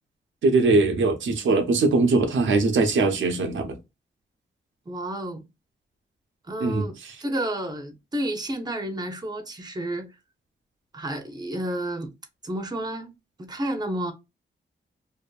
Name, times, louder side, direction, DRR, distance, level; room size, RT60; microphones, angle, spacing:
voice 1, 0.4-3.8 6.6-6.8, right 3 dB, 75° right, 0.6 m, -21 dB
voice 2, 4.9-5.4 6.5-10.1 10.9-12.1 12.4-13.1 13.4-14.1, right 1 dB, 20° right, 0.7 m, -31 dB
2.5 x 2.5 x 2.2 m
cardioid pair, 70°, 20 cm